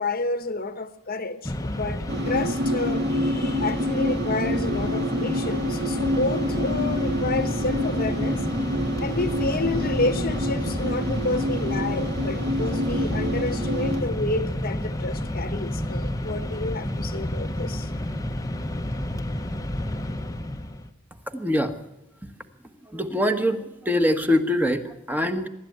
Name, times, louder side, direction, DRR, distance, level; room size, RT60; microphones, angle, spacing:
voice 1, 0.0-8.5 9.0-17.9, left 3 dB, 40° left, 1.1 m, -30 dB
Mechanisms, 1.4-20.9, left 1 dB, 15° left, 0.9 m, -30 dB
sound 1, 2.1-14.0, equal, 50° right, 2.5 m, -27 dB
voice 2, 21.3-21.7 22.9-25.5, left 1 dB, 10° right, 1.3 m, -23 dB
24.0 x 12.0 x 9.3 m
head